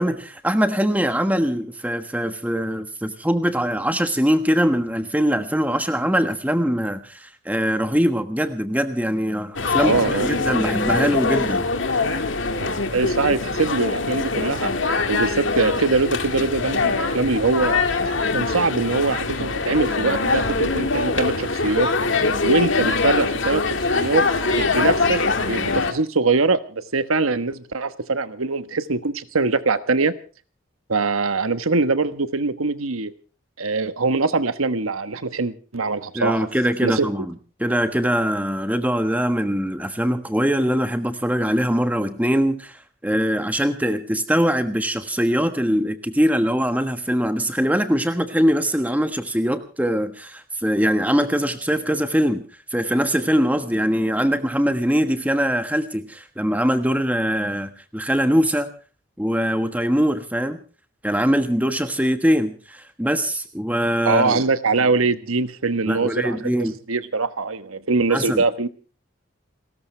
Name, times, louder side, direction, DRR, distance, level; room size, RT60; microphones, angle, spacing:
voice 1, 0.0-11.7 36.1-37.3 37.6-42.7 43.0-52.4 52.7-58.7 59.2-60.6 61.0-64.4 65.9-66.7 68.1-68.4, equal, 5° right, 9 dB, 1.3 m, -22 dB
sound 1, 9.6-25.9, left 3 dB, 65° left, 2.0 m, -23 dB
voice 2, 9.8-10.4 12.6-14.7 15.1-17.9 18.3-21.9 22.4-30.1 30.9-33.1 33.6-36.5 36.8-37.1 64.0-66.5 66.9-68.7, right 3 dB, 90° right, 12 dB, 1.2 m, -22 dB
30.0 x 13.5 x 3.3 m, 0.38 s
head